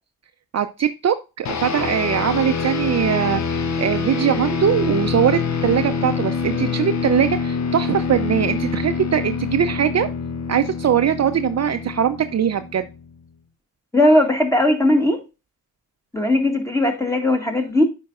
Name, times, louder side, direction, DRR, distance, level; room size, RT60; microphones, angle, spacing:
voice 1, 0.5-10.1 10.5-12.9, right 9 dB, 45° right, 0.5 m, -21 dB
sound 1, 1.4-13.1, left 5 dB, 45° left, 0.7 m, -25 dB
voice 2, 13.9-15.2 16.1-17.8, left 1 dB, 10° left, 1.6 m, -18 dB
8.6 x 5.2 x 2.4 m
cardioid pair, 85°, 37 cm